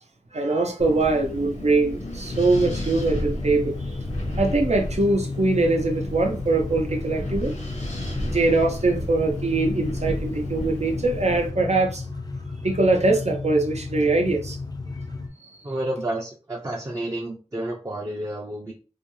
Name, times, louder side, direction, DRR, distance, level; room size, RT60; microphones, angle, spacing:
voice 1, 0.3-3.7 4.4-7.5 8.2-12.0 12.6-14.6, right 2 dB, 65° right, 0.6 m, -22 dB
Wind, 0.8-11.5, left 1 dB, 75° left, 0.8 m, -33 dB
sound 1, 2.3-15.3, left 3 dB, 35° left, 0.3 m, -34 dB
voice 2, 15.6-18.7, right 1 dB, 30° right, 0.6 m, -30 dB
2.5 x 2.2 x 3.0 m
wide cardioid pair, 45°, 12 cm